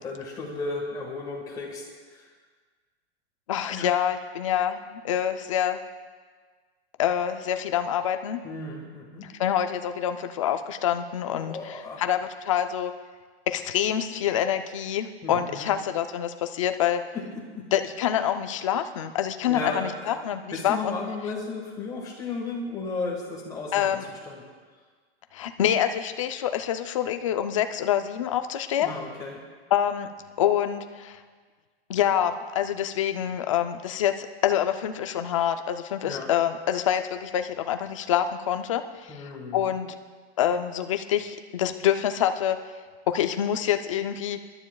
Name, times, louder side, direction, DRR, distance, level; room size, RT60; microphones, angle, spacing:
voice 1, 0.0-2.3 3.7-3.9 8.4-9.3 11.3-12.0 15.2-15.7 17.1-17.7 19.5-20.2 20.5-24.4 28.8-29.4 36.0-36.3 39.1-39.7, left 3 dB, 10° left, -2 dB, 1.4 m, -35 dB
voice 2, 3.5-5.8 7.0-8.4 9.2-12.9 13.5-17.0 17.7-21.0 21.2-21.3 23.7-24.0 25.3-28.9 29.7-30.1 30.4-31.2 31.9-39.9 40.4-42.6 43.1-44.4, left 10 dB, 30° left, 8 dB, 0.4 m, -26 dB
24.5 x 12.0 x 2.3 m, 1.5 s
supercardioid pair, 180°, 33 cm